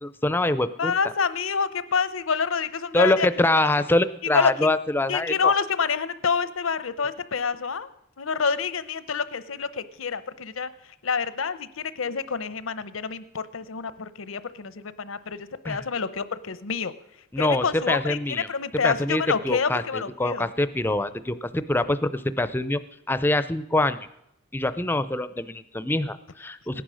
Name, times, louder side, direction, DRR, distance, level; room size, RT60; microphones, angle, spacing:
voice 1, 0.0-0.9 2.9-5.5 15.7-15.8 17.3-18.5 18.8-22.8 23.1-24.0 24.5-26.8, left 1 dB, 10° left, 13 dB, 0.5 m, -24 dB
voice 2, 0.8-3.3 4.2-4.5 5.1-7.9 8.2-10.7 11.0-16.9 17.4-20.5 26.7-26.8, left 5 dB, 85° left, 14 dB, 0.8 m, -27 dB
17.5 x 10.0 x 6.3 m, 0.84 s
head